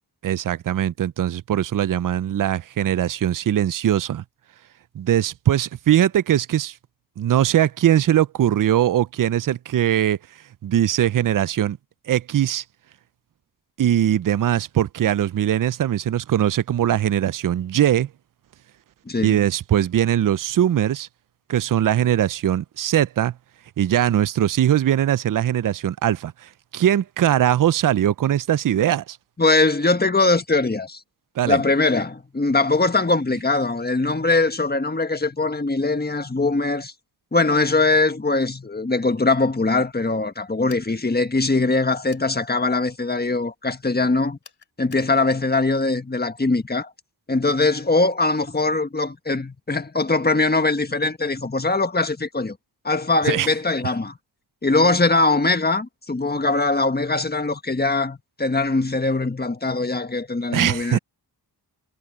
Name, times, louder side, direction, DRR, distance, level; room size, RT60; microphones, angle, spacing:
voice 1, 0.2-4.2 4.9-6.7 7.2-10.2 10.6-11.8 12.1-12.6 13.8-18.1 19.2-21.1 21.5-23.3 23.8-29.2 31.4-31.6 53.3-53.5 60.5-61.0, right 11 dB, 50° right, 0.5 m, -21 dB
voice 2, 19.0-19.4 29.4-31.0 31.4-36.9 37.3-44.4 44.8-46.9 47.3-52.6 52.8-54.2 54.6-61.0, left 3 dB, 25° left, 1.5 m, -21 dB
sound 1, 40.7-41.0 42.1-42.3 44.4-45.1, left 6 dB, 75° left, 6.7 m, -48 dB
wide cardioid pair, 95°, 42 cm